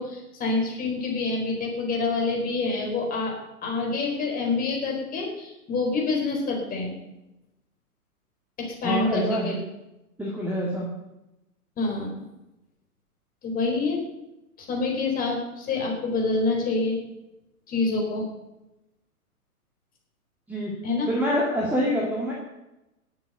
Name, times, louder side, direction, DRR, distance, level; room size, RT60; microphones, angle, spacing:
voice 1, 0.0-6.9 8.6-9.6 11.8-12.1 13.4-14.0 14.6-17.0 17.7-18.3 20.8-21.1, left 3 dB, 20° left, 0 dB, 4.3 m, -27 dB
voice 2, 8.8-9.5 10.2-10.9 20.5-20.7 21.1-22.3, equal, 5° right, -4 dB, 2.1 m, -26 dB
18.5 x 7.7 x 6.8 m, 0.94 s
figure-of-eight pair, 120°, 46 cm